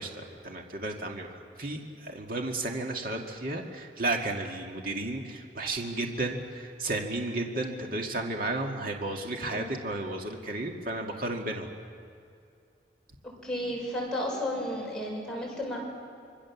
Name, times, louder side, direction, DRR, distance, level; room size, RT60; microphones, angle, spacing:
voice 1, 0.0-11.7, right 2 dB, 55° right, 1 dB, 2.2 m, -33 dB
voice 2, 9.4-9.7 13.2-15.8, left 1 dB, 5° left, -3 dB, 6.6 m, -33 dB
26.0 x 24.0 x 7.2 m, 2.4 s
head